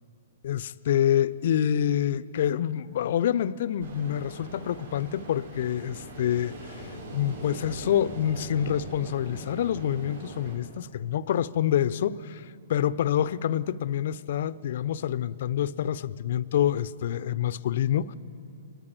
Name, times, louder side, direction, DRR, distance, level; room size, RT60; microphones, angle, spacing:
voice 1, 0.4-18.2, left 10 dB, 55° left, 0.6 m, -27 dB
Ocean, 3.8-10.6, right 1 dB, 75° right, 6.5 m, -41 dB
23.0 x 21.5 x 8.7 m
figure-of-eight pair, 115°, 0 cm